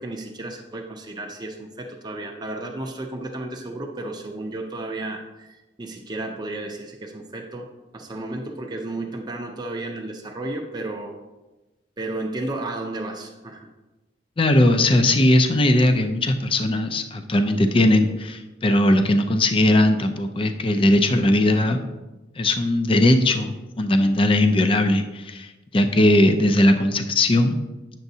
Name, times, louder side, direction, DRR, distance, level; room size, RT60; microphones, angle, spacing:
voice 1, 0.0-5.5 5.8-7.7 7.9-11.1 12.0-13.7, right 2 dB, 20° right, 1 dB, 0.5 m, -33 dB
voice 2, 14.4-21.8 22.4-27.6, left 1 dB, 25° left, 7 dB, 0.5 m, -19 dB
9.0 x 7.0 x 2.7 m, 1.1 s
head